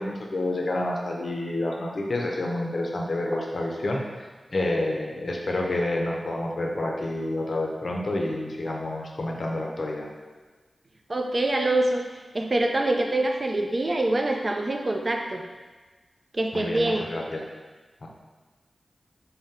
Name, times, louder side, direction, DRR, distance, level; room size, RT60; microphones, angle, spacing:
voice 1, 0.0-10.1 16.5-17.4 18.0-18.1, left 1 dB, 60° left, -1 dB, 0.6 m, -29 dB
voice 2, 11.1-12.0 12.3-15.4 16.3-17.0, right 2 dB, 40° right, 2 dB, 0.4 m, -25 dB
3.6 x 2.1 x 4.1 m, 1.3 s
wide cardioid pair, 90°, 0 cm